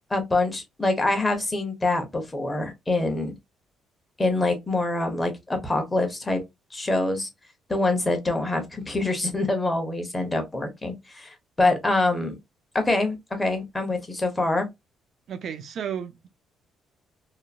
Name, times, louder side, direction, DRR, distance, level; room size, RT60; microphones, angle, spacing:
voice 1, 0.1-3.3 4.2-6.4 6.7-7.3 7.7-12.4 12.7-14.7, left 2 dB, 20° left, 1.1 m, -25 dB
voice 2, 15.3-16.3, right 8 dB, 60° right, 0.5 m, -33 dB
2.9 x 2.1 x 2.5 m
cardioid pair, 85°, 0 cm